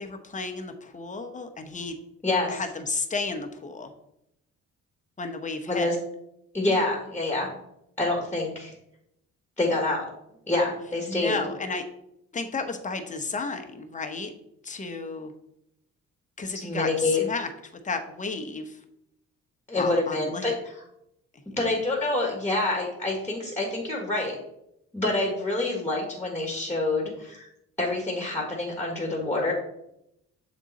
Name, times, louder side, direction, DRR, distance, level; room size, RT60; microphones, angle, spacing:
voice 1, 0.0-2.0 2.5-3.9 5.2-5.9 11.1-11.8 12.3-14.3 14.6-15.3 16.4-17.5 17.8-18.8 19.7-20.5 21.6-21.7, left 3 dB, 25° left, 6 dB, 0.9 m, -32 dB
voice 2, 2.2-2.6 5.7-5.9 6.5-7.5 8.0-8.7 9.6-10.1 10.5-11.4 16.6-17.2 19.7-20.5 21.6-24.4 24.9-27.5 27.8-29.5, left 2 dB, 5° left, -1 dB, 1.5 m, -27 dB
7.2 x 3.7 x 4.1 m, 0.80 s
cardioid pair, 90°, 30 cm